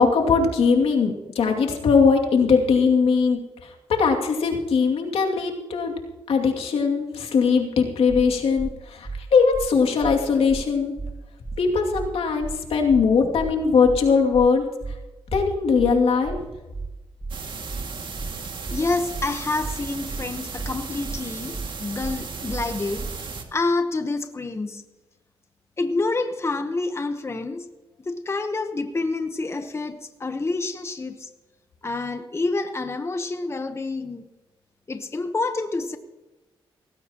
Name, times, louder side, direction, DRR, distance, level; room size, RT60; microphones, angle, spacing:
voice 1, 0.0-3.4 3.9-5.9 6.3-10.9 11.6-14.6 15.3-16.4, left 5 dB, 80° left, 2 dB, 2.5 m, -20 dB
sound 1, 8.1-8.2 8.6-8.7 9.0-9.2 9.5-9.7 10.0-10.2 10.5-10.6 11.0-11.1 11.4-11.6 11.9-12.1 12.4-12.6 12.9-13.0 13.4-13.5 13.8-14.0 14.3-14.5 14.8-15.0 15.3-15.4 15.8-15.9 16.2-16.4 16.7-16.9 17.2-17.4 17.7-17.8 18.2-18.3 18.6-18.8 19.1-19.3 19.6-19.8 20.1-20.2 20.6-20.7 21.0-21.2 21.5-21.7 22.0-22.2 22.5-22.6 23.0-23.1, right 3 dB, 20° right, 0.8 m, -33 dB
sound 2, 17.3-23.4, right 5 dB, 55° right, 2.1 m, -35 dB
voice 2, 18.7-24.8 25.8-27.7 28.0-31.3 31.8-34.3 34.9-36.0, left 3 dB, 30° left, 8 dB, 1.0 m, -28 dB
18.0 x 16.0 x 3.0 m, 1.1 s
cardioid pair, 85°, 10 cm